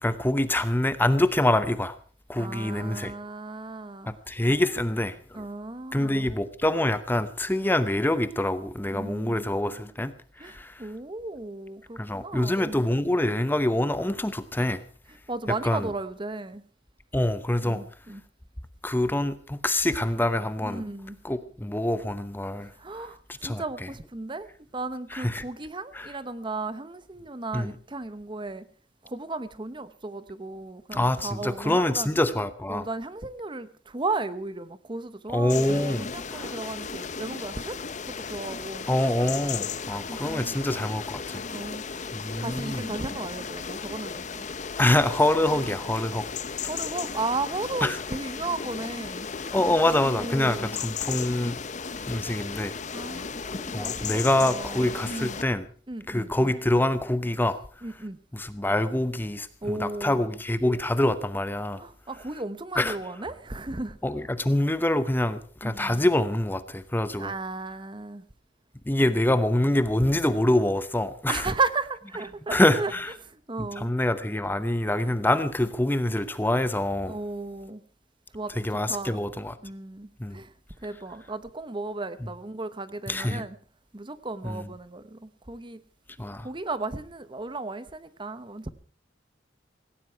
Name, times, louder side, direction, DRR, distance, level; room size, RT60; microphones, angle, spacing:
voice 1, 0.0-2.0 2.3-3.1 4.1-5.4 5.9-10.9 12.0-14.8 15.6-15.9 17.1-17.8 18.8-20.8 21.2-22.7 23.4-23.6 25.1-25.4 25.9-26.1 27.5-27.7 30.9-32.8 35.3-36.5 38.9-41.4 42.1-42.8 44.8-46.3 47.8-48.0 49.5-51.6 52.1-52.7 53.7-55.6 56.1-57.6 58.3-61.8 62.8-63.0 64.0-67.3 68.9-71.4 72.5-73.1 73.6-77.1 78.6-79.6 80.2-80.4 83.1-83.4 84.4-84.6 86.2-86.5, left 1 dB, 10° left, 0.8 m, -25 dB
voice 2, 2.4-4.1 5.3-6.3 8.9-9.4 10.4-12.8 15.3-16.6 17.6-18.2 20.6-21.2 22.7-28.7 29.0-32.1 32.7-37.8 38.0-38.9 40.1-40.6 41.5-44.5 46.7-49.6 50.0-50.7 52.9-55.4 55.9-56.5 57.8-58.2 59.6-60.2 61.8-64.0 65.6-66.0 67.2-68.2 71.3-72.9 73.2-73.9 77.1-77.8 78.3-78.5 78.9-79.2 79.6-80.5 80.8-83.6 83.9-85.8 86.4-88.7, right 3 dB, 25° right, 0.9 m, -35 dB
sound 1, 35.5-55.4, left 5 dB, 40° left, 0.8 m, -35 dB
17.5 x 17.5 x 4.6 m
head